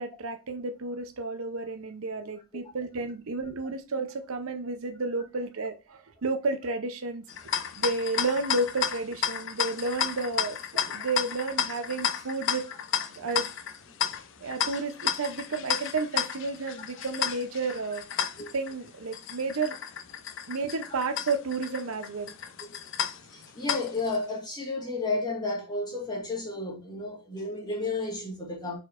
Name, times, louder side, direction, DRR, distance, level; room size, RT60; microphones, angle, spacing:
voice 1, 0.0-12.6 13.1-13.5 14.4-18.0 18.5-19.8 20.5-22.3, right 3 dB, 70° right, 0.6 m, -32 dB
sound 1, 7.3-24.2, left 8 dB, 60° left, 0.5 m, -33 dB
voice 2, 23.3-28.8, left 3 dB, 20° left, 1.6 m, -32 dB
4.5 x 4.2 x 2.5 m
head